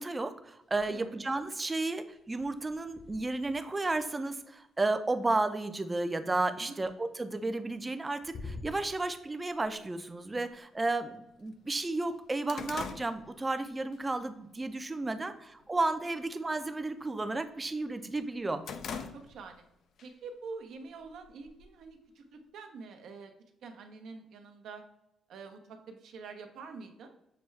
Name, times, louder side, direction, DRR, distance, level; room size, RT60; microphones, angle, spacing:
voice 1, 0.0-18.6, right 2 dB, 20° right, 9 dB, 0.4 m, -33 dB
sound 1, 0.6-1.3 1.6-5.7 7.3-8.0 8.2-9.0, left 3 dB, 45° left, 0.9 m, -49 dB
sound 2, 10.6-10.7 11.2-11.3 11.6-14.0 14.4-14.7 15.1-15.6 15.9-16.2 16.5-17.8 18.2-19.6 20.0-20.1 21.0-21.9, left 6 dB, 65° left, 0.4 m, -43 dB
voice 2, 18.9-19.6 20.0-23.3 23.6-24.8 25.3-27.2, right 4 dB, 75° right, 5 dB, 0.6 m, -46 dB
6.6 x 2.3 x 3.1 m, 0.85 s
cardioid pair, 90°, 0 cm